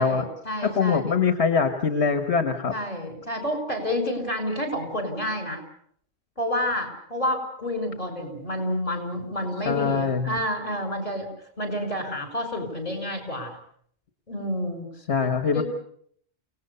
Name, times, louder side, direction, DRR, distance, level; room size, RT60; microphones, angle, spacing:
voice 1, 0.0-1.2 2.7-5.6 6.4-13.6 14.3-14.9 15.5-15.6, left 1 dB, 50° left, 5 dB, 5.9 m, -29 dB
voice 2, 0.6-2.7 9.7-10.4 15.1-15.6, left 5 dB, 75° left, 7 dB, 1.7 m, -23 dB
29.0 x 18.5 x 6.9 m, 0.63 s
omnidirectional pair, 1.1 m